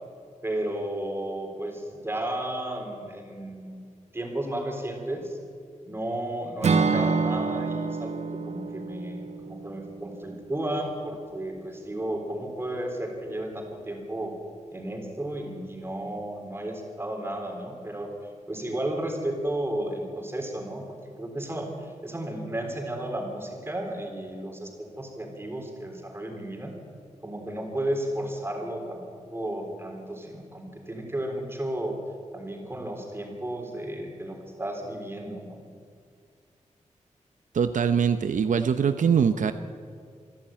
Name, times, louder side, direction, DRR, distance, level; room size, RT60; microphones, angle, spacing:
voice 1, 0.4-3.8 4.1-5.4 5.9-14.4 14.7-18.1 18.5-26.7 27.2-29.0 29.3-32.0 32.3-35.6, right 1 dB, 20° right, 2 dB, 3.8 m, -33 dB
Acoustic guitar / Strum, 6.6-10.7, right 4 dB, 60° right, 1.2 m, -28 dB
voice 2, 37.5-39.5, right 7 dB, 80° right, 10 dB, 0.7 m, -23 dB
26.0 x 11.5 x 9.0 m, 2.3 s
wide cardioid pair, 130°, 13 cm